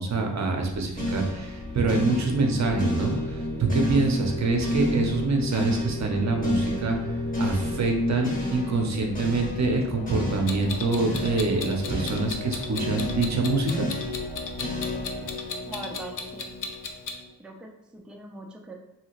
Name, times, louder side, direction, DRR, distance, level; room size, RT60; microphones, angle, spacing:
voice 1, 0.0-13.9, right 3 dB, 45° right, 3 dB, 0.7 m, -26 dB
sound 1, 0.7-15.4, equal, 75° left, 1.2 m, -43 dB
sound 2, 1.0-17.2, left 1 dB, 20° left, 0.9 m, -31 dB
Clock, 10.5-17.2, left 5 dB, 55° left, 0.5 m, -35 dB
voice 2, 15.6-16.5 17.4-18.7, right 2 dB, ahead, 1 dB, 0.4 m, -41 dB
2.8 x 2.7 x 2.9 m, 0.97 s
cardioid pair, 70°, 39 cm